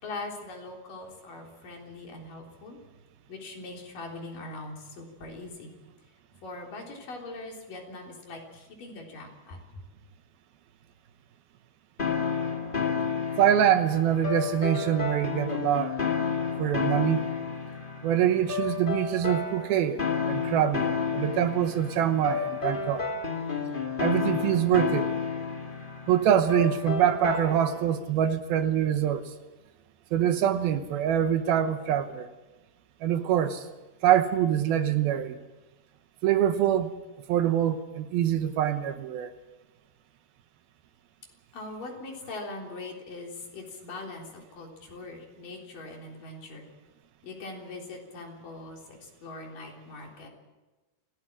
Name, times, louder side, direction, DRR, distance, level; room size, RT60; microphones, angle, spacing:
voice 1, 0.0-2.8 3.3-5.7 6.4-9.8 41.5-46.7 47.2-50.3, left 2 dB, 55° left, 1 dB, 5.2 m, -41 dB
sound 1, 12.0-27.9, left 6 dB, 25° left, 1.1 m, -31 dB
voice 2, 13.4-16.0 16.6-17.2 18.0-23.0 24.0-25.1 26.1-29.2 30.1-32.3 33.0-33.7 34.0-35.4 36.2-36.9 37.3-39.3, right 10 dB, 75° right, 9 dB, 2.8 m, -25 dB
25.5 x 17.5 x 7.4 m, 1.2 s
omnidirectional pair, 4.6 m